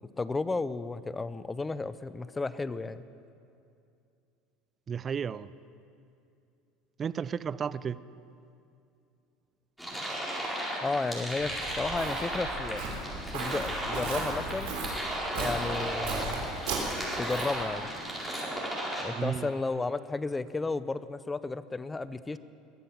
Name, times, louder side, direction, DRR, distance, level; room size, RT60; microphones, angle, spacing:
voice 1, 0.0-3.0 10.8-12.9 13.3-14.8 15.3-16.5 17.2-17.9 19.0-22.4, left 3 dB, 15° left, 0.6 m, -33 dB
voice 2, 4.9-5.5 7.0-8.0 19.1-19.5, right 7 dB, 35° right, 0.4 m, -33 dB
sound 1, 9.8-19.0, right 1 dB, ahead, 4.5 m, -35 dB
Walk footsteps, 11.4-17.7, right 3 dB, 75° right, 3.4 m, -36 dB
22.0 x 7.7 x 7.2 m
hypercardioid pair, 90°, 0 cm